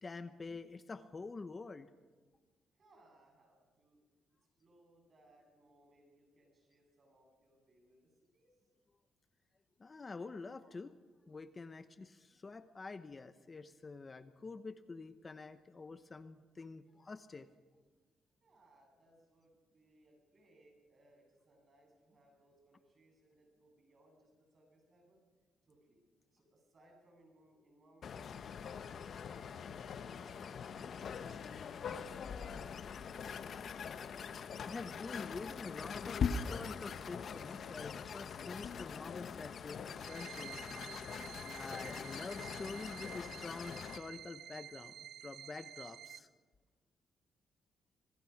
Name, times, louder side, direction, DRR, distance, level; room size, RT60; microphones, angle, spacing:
voice 1, 0.0-1.9 9.8-10.9 11.3-17.5 33.5-33.6 34.6-40.9 41.6-46.3, left 3 dB, 30° left, 11 dB, 0.9 m, -47 dB
voice 2, 2.7-4.0 4.6-8.6 18.4-25.2 25.7-26.1 26.3-29.7 30.1-30.8 31.1-32.6, right 1 dB, 40° right, 2 dB, 7.7 m, -67 dB
sound 1, 28.0-44.0, left 6 dB, 55° left, 1.0 m, -43 dB
sound 2, 39.9-46.2, right 10 dB, 75° right, 0.6 m, -51 dB
25.5 x 19.0 x 6.0 m, 1.4 s
cardioid pair, 100°, 0 cm